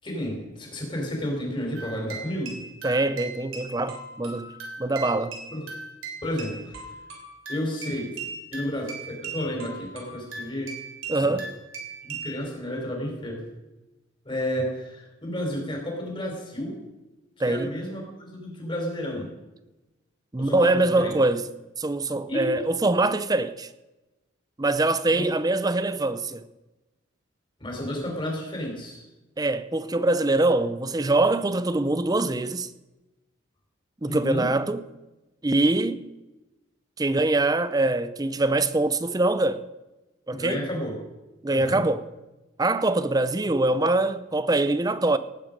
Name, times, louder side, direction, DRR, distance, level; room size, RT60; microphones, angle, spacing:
voice 1, 0.0-2.6 5.5-5.6 6.2-6.8 7.5-8.1 8.5-10.7 11.1-11.4 12.0-13.4 14.3-16.8 17.4-19.3 20.4-21.1 22.3-22.5 25.1-25.3 27.6-29.0 34.1-34.5 40.3-41.0 41.5-41.8, equal, 25° left, 4.0 m, -31 dB
sound 1, 1.8-12.3, right 4 dB, 80° right, 3.9 m, -39 dB
voice 2, 2.8-4.5 4.8-5.4 11.1-11.5 17.4-17.7 20.3-21.4 21.8-23.7 24.6-26.4 29.4-32.7 34.0-34.8 35.4-36.1 37.0-39.6 40.3-40.7 41.4-42.1 42.6-45.2, right 2 dB, 20° right, 0.5 m, -23 dB
18.5 x 9.3 x 5.2 m
head